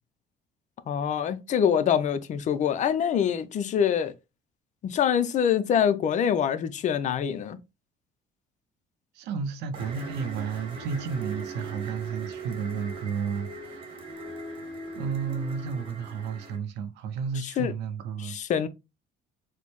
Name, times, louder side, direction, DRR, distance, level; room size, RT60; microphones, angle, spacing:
voice 1, 0.9-4.1 4.8-7.6 17.4-17.7 18.2-18.7, left 8 dB, 45° left, 0.5 m, -25 dB
voice 2, 9.1-14.0 14.9-18.4, right 6 dB, 85° right, 0.5 m, -32 dB
sound 1, 9.7-16.6, right 3 dB, 30° right, 1.1 m, -40 dB
4.3 x 2.1 x 3.0 m
cardioid pair, 110°, 17 cm